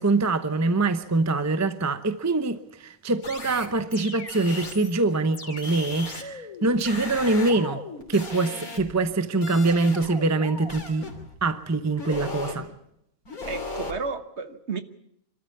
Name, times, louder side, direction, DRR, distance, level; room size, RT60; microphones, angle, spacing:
voice 1, 0.0-11.1 11.4-12.7, right 3 dB, 15° right, 0.7 m, -24 dB
sound 1, 3.2-4.9 5.3-9.1 9.4-11.3 12.0-12.6 13.2-14.0, left 3 dB, 85° left, 3.7 m, -37 dB
voice 2, 13.5-14.8, right 4 dB, 50° right, 1.5 m, -32 dB
26.0 x 13.5 x 8.5 m
omnidirectional pair, 1.5 m